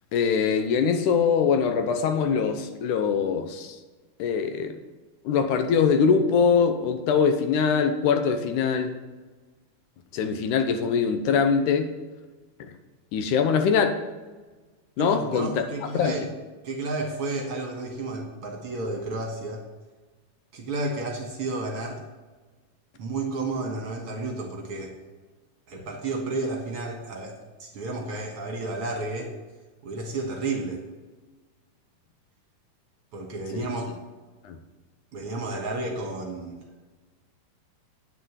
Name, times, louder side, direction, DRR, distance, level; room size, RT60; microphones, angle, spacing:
voice 1, 0.1-3.8 4.2-4.8 5.3-8.9 10.1-11.9 12.6-12.7 13.1-14.0 15.0-15.6 15.9-16.2 33.5-33.7 34.4-34.6, left 6 dB, 80° left, 7 dB, 2.2 m, -23 dB
voice 2, 15.0-16.3 16.6-19.6 20.5-22.0 23.0-25.0 25.7-29.3 29.8-30.8 33.1-34.0 35.1-36.6, right 2 dB, 55° right, 1 dB, 2.0 m, -31 dB
9.0 x 6.7 x 8.1 m, 1.3 s
omnidirectional pair, 3.7 m